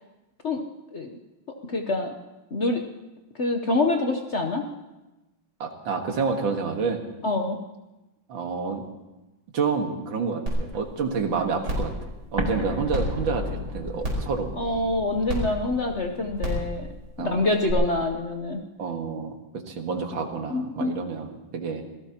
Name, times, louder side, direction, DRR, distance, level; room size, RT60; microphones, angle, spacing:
voice 1, 1.5-2.1 2.5-2.8 3.4-4.7 7.2-7.6 14.6-16.9 17.2-18.6 20.5-20.9, left 2 dB, 50° left, 3 dB, 0.9 m, -26 dB
voice 2, 5.6-7.0 8.3-8.8 9.5-11.9 12.3-14.5 17.2-17.5 18.8-19.3 19.7-21.8, right 5 dB, 75° right, 4 dB, 2.3 m, -28 dB
sound 1, 10.5-10.6 11.0-11.1 11.6-11.9 12.9-13.0 14.0-14.3 15.3-15.4 16.4-16.6 17.7-17.8, right 1 dB, 55° right, 5.0 m, -27 dB
Explosion, 12.4-17.1, left 1 dB, 15° right, 1.5 m, -35 dB
26.5 x 17.5 x 2.9 m, 1.1 s
omnidirectional pair, 2.2 m